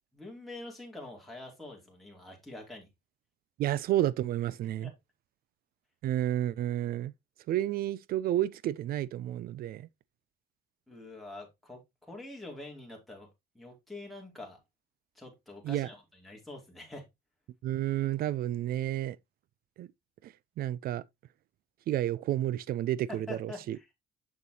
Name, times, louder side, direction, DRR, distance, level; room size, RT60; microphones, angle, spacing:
voice 1, 0.1-2.9 4.8-4.9 10.9-13.3 13.5-14.6 15.1-17.0 23.1-23.9, left 2 dB, ahead, 2.8 m, -45 dB
voice 2, 3.6-4.9 6.0-7.1 7.5-9.9 15.6-15.9 17.6-19.2 19.8-19.9 20.2-21.0 21.9-23.8, right 13 dB, 60° right, 0.4 m, -31 dB
6.7 x 6.7 x 2.9 m
cardioid pair, 110°, 17 cm